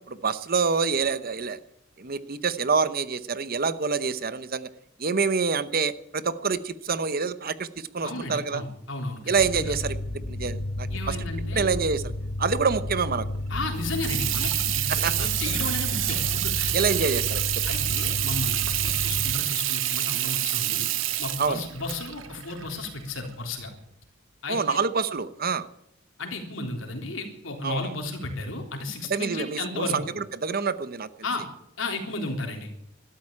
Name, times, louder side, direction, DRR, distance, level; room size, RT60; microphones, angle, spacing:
voice 1, 0.1-1.6 2.0-4.7 5.0-8.6 9.3-10.0 10.3-11.2 11.5-12.1 12.4-13.3 14.9-15.3 16.7-17.4 21.4-21.6 24.5-25.7 27.6-27.9 29.1-31.1, right 5 dB, 50° right, 14 dB, 0.9 m, -26 dB
voice 2, 8.0-9.7 10.9-11.7 13.5-16.7 17.7-20.9 21.2-23.7 24.4-24.8 26.2-30.0 31.2-31.4 31.8-32.7, left 2 dB, 80° left, 3 dB, 3.6 m, -34 dB
sound 1, 9.4-19.3, left 1 dB, 55° left, 1.1 m, -32 dB
Water tap faucet / Sink (filling or washing), 13.7-23.3, right 14 dB, 80° right, 1.0 m, -28 dB
13.0 x 12.5 x 8.7 m, 0.76 s
head